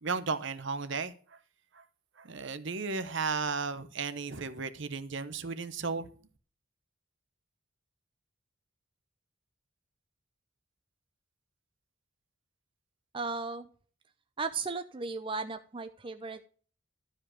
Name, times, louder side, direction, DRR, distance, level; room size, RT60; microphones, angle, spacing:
voice 1, 0.0-1.4 1.7-1.8 2.2-6.1, right 4 dB, 60° right, 0.8 m, -34 dB
voice 2, 13.1-13.7 14.4-16.4, right 4 dB, 25° right, 0.6 m, -36 dB
12.5 x 5.0 x 6.2 m
head